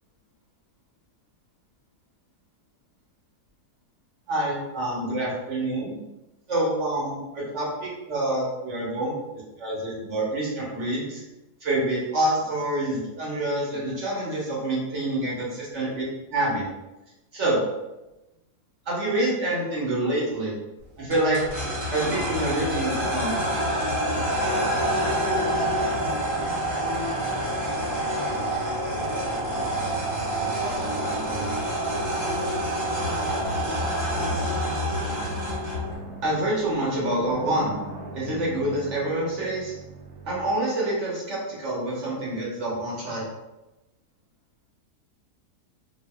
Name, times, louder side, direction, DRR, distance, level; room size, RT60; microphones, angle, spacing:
voice 1, 4.3-5.9 6.5-9.1 9.6-11.2 11.6-16.0 16.3-16.6 17.3-17.6 18.9-20.5 21.0-21.4 21.9-23.3 36.2-37.7 38.1-39.7 40.2-43.2, right 1 dB, 50° right, -5 dB, 1.1 m, -27 dB
sound 1, 21.1-35.9, right 1 dB, 15° right, 0.7 m, -27 dB
sound 2, 21.2-40.5, right 3 dB, 80° right, 0.6 m, -42 dB
voice 2, 25.1-30.0 30.4-32.8 33.1-33.7 34.4-35.3, left 1 dB, 80° left, -7 dB, 0.4 m, -39 dB
4.0 x 2.3 x 2.2 m, 0.98 s
omnidirectional pair, 1.7 m